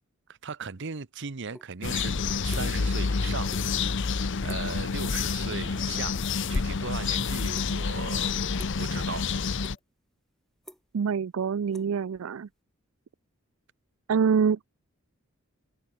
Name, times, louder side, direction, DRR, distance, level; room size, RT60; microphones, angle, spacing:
voice 1, 0.3-2.1 2.4-3.5 4.4-6.2 6.5-8.4 8.8-9.3, right 5 dB, 60° right, 0.9 m, -37 dB
sound 1, 1.5-1.7 2.0-2.9 3.2-3.7 4.0-4.2 4.5-4.8 5.1-5.6 5.9-7.1 7.5-8.0 8.5-8.9 9.3-10.0 10.3-12.5, equal, ahead, 2.3 m, -49 dB
sound 2, 1.8-9.8, left 5 dB, 60° left, 0.8 m, -28 dB
sound 3, 3.6-9.8, left 3 dB, 25° left, 7.3 m, -65 dB
voice 2, 10.9-12.5 14.1-14.7, right 6 dB, 75° right, 0.4 m, -25 dB
open air
head